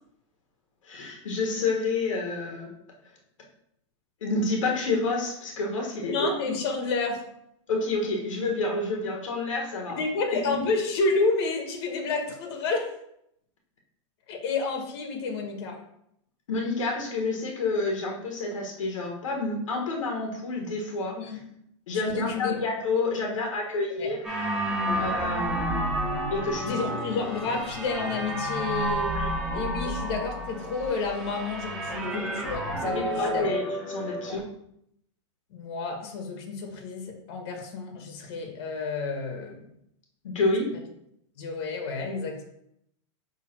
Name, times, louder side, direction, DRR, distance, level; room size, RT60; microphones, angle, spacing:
voice 1, 0.9-2.7 4.2-6.3 7.7-10.0 10.3-10.6 16.5-21.1 21.9-24.2 25.0-25.8 26.3-26.8 29.1-29.3 32.9-34.4 40.2-40.7, left 3 dB, 85° left, 0 dB, 1.5 m, -29 dB
voice 2, 6.0-7.2 9.9-12.9 14.3-15.8 21.1-21.4 22.1-22.6 23.1-23.5 24.0-24.1 24.8-25.1 26.6-29.2 29.5-33.5 35.5-39.7 41.4-42.4, left 4 dB, 55° left, 2 dB, 1.6 m, -30 dB
sound 1, 24.2-34.4, right 1 dB, 5° right, 2.3 m, -30 dB
6.3 x 3.5 x 4.4 m, 0.75 s
hypercardioid pair, 140°, 16 cm